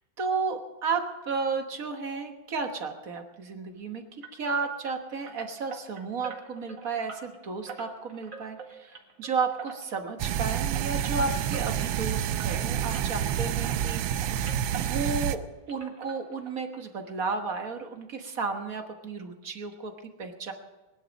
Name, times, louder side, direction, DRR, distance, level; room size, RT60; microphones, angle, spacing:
voice 1, 0.2-14.4 14.7-20.5, right 4 dB, 50° right, 6 dB, 1.5 m, -33 dB
sound 1, 4.2-13.4 13.6-15.4 15.7-16.8 17.1-17.2 17.6-17.7 18.0-18.1, right 5 dB, 65° right, 2.6 m, -45 dB
sound 2, 10.2-15.4, right 10 dB, 80° right, 1.4 m, -28 dB
20.5 x 11.0 x 5.2 m, 1.1 s
omnidirectional pair, 2.2 m